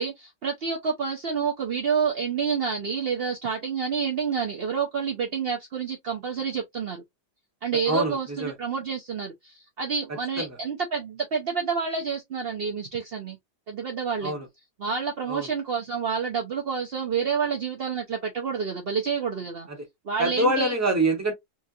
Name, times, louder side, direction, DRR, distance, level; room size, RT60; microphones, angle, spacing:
voice 1, 0.0-7.0 7.6-13.4 13.7-14.3 14.8-19.7 20.0-20.8, right 6 dB, 60° right, 0.6 m, -28 dB
voice 2, 7.9-8.5 10.4-10.5 14.2-14.4 15.3-15.5 20.2-21.3, right 1 dB, 10° right, 1.1 m, -25 dB
4.4 x 2.4 x 2.7 m
omnidirectional pair, 1.9 m